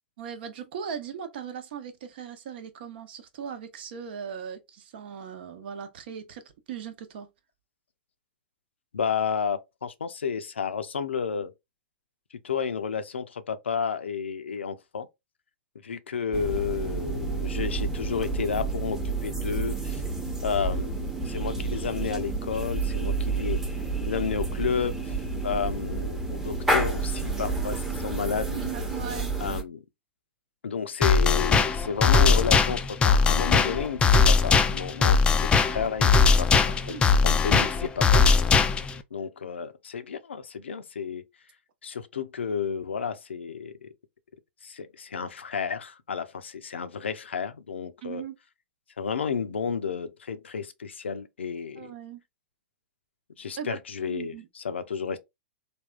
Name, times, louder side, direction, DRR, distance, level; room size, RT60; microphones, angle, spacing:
voice 1, 0.2-7.3 28.5-29.3 36.5-37.7 48.0-48.4 51.8-52.2 53.6-53.8 54.1-54.5, right 8 dB, 60° right, 0.7 m, -39 dB
voice 2, 8.9-11.5 12.4-15.1 15.8-20.0 20.4-23.6 24.1-25.2 25.4-28.5 29.4-29.8 30.6-38.2 39.1-41.2 41.8-43.9 44.6-48.2 49.0-51.9 53.4-55.2, left 6 dB, 80° left, 0.5 m, -31 dB
sound 1, 16.3-29.6, right 3 dB, 5° right, 0.7 m, -30 dB
sound 2, 31.0-39.0, left 5 dB, 15° left, 0.3 m, -20 dB
3.4 x 2.3 x 2.3 m
hypercardioid pair, 110°, 6 cm